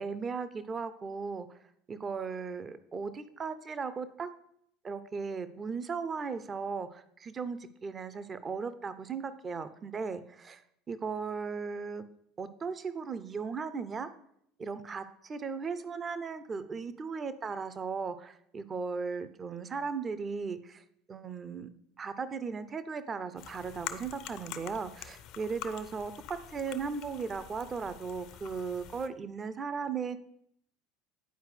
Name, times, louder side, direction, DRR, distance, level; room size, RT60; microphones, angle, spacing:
voice 1, 0.0-1.5 1.9-4.3 4.8-10.6 10.9-12.0 12.4-14.1 14.6-20.8 21.1-21.7 22.0-30.2, right 5 dB, 30° right, 13 dB, 0.5 m, -37 dB
sound 1, 23.4-29.1, left 9 dB, 55° left, 0.5 m, -46 dB
10.0 x 4.6 x 3.2 m, 0.71 s
hypercardioid pair, 75°, 0 cm